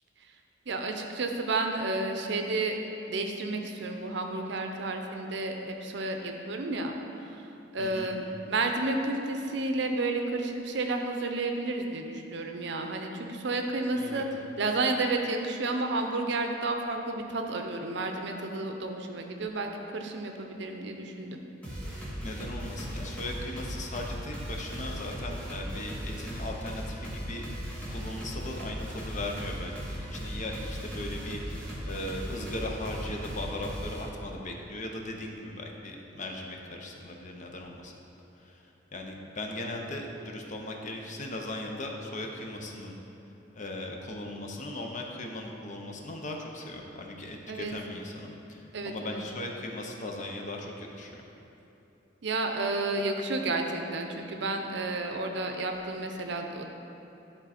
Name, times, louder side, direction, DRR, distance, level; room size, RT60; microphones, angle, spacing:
voice 1, 0.7-2.8 3.1-6.9 7.7-14.3 14.6-21.4 47.5-47.8 48.7-49.2 52.2-56.7, right 2 dB, 65° right, 4 dB, 0.6 m, -31 dB
voice 2, 7.8-8.1 13.9-14.2 22.2-27.4 27.9-37.9 38.5-38.6 38.9-42.9 43.5-51.2, left 1 dB, 40° left, 1 dB, 0.7 m, -38 dB
sound 1, 21.6-34.0, equal, 5° left, 1.7 m, -37 dB
11.0 x 3.8 x 4.2 m, 3.0 s
head